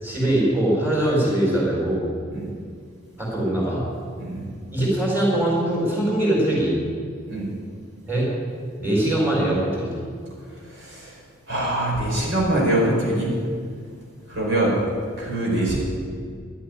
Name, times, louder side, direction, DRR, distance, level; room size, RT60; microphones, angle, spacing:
voice 1, 0.0-2.0 3.2-3.9 4.7-6.7 8.1-8.3 8.8-10.1, right 1 dB, 10° right, -5 dB, 4.5 m, -22 dB
voice 2, 10.6-11.2 11.5-13.3 14.3-14.8 15.2-15.8, right 1 dB, 65° right, -4 dB, 4.7 m, -23 dB
12.0 x 8.6 x 10.0 m, 2.1 s
head